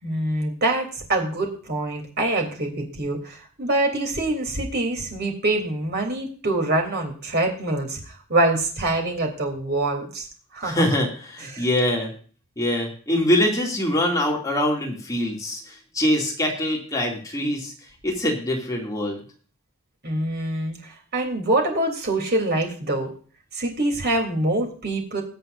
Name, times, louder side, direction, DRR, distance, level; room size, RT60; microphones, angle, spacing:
voice 1, 0.0-10.3 10.5-10.8 11.5-11.7 20.0-23.1 23.5-25.2, right 2 dB, 50° right, 2 dB, 3.3 m, -25 dB
voice 2, 10.6-12.1 12.6-17.7 18.0-19.2, left 1 dB, 15° left, -1 dB, 2.6 m, -24 dB
21.5 x 7.7 x 2.6 m, 0.43 s
head